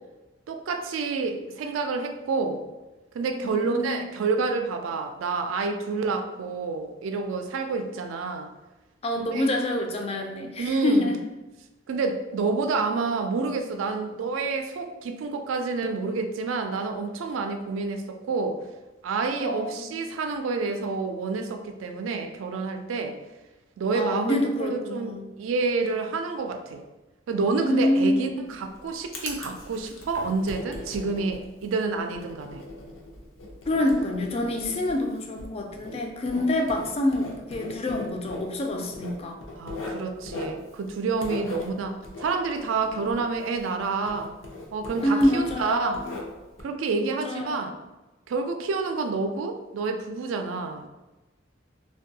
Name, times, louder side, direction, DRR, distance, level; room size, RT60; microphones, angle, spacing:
voice 1, 0.5-2.6 3.1-8.5 9.2-9.5 10.6-11.1 11.9-18.6 19.0-23.2 23.8-26.8 27.3-32.6 36.3-36.5 39.6-44.3 44.7-46.0 46.6-47.7 48.3-50.9, right 4 dB, 85° right, 5 dB, 0.3 m, -28 dB
voice 2, 3.4-4.1 9.0-11.2 19.4-20.2 23.9-25.3 27.6-28.5 33.7-39.4 45.0-46.1 47.0-47.7, left 1 dB, 30° left, 3 dB, 0.3 m, -27 dB
Writing, 28.4-43.8 44.1-46.6, left 2 dB, 85° left, 0.6 m, -40 dB
2.6 x 2.2 x 2.7 m, 1.1 s
head